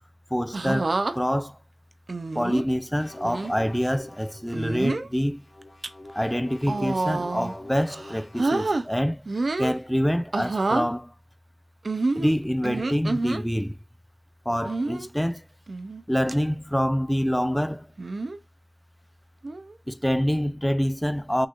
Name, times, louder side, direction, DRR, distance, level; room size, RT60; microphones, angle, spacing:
voice 1, 0.3-1.6 2.3-5.4 6.1-9.3 9.6-11.1 12.2-13.8 14.5-15.4 16.1-17.9 19.9-21.5, equal, 5° left, 0.6 m, -26 dB
sound 1, 0.5-1.1 2.1-2.6 3.2-3.5 4.5-5.1 5.6-5.9 6.6-7.5 7.9-8.8 9.3-9.8 10.3-10.9 11.8-13.4 14.6-15.1 15.7-16.0 16.3-16.4 18.0-18.4 19.4-19.7, right 3 dB, 80° right, 0.5 m, -28 dB
sound 2, 2.9-4.6 5.3-9.0, left 1 dB, 45° left, 1.3 m, -46 dB
6.3 x 2.8 x 2.5 m
wide cardioid pair, 55°, 0 cm